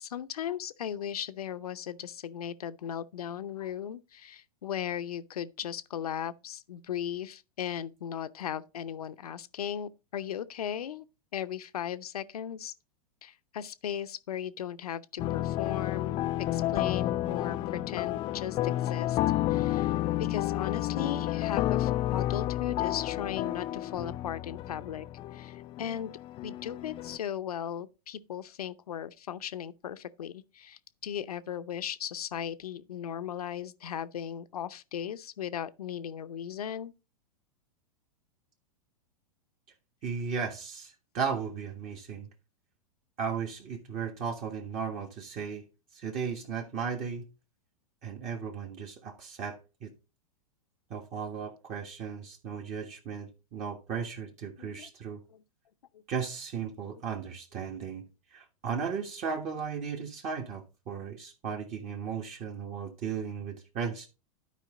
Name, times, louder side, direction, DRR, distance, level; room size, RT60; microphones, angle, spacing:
voice 1, 0.0-11.0 11.3-12.7 13.2-19.2 19.5-25.1 25.3-26.1 26.4-36.9 54.6-54.9 55.3-55.4 55.9-56.0, left 9 dB, 75° left, 0.8 m, -37 dB
sound 1, 15.2-27.2, left 14 dB, 25° left, 0.4 m, -31 dB
voice 2, 40.0-42.3 43.2-45.6 45.9-47.3 48.0-49.9 50.9-55.2 56.1-58.0 58.3-64.1, right 6 dB, 35° right, 1.6 m, -36 dB
11.5 x 5.0 x 3.8 m
hypercardioid pair, 105°, 19 cm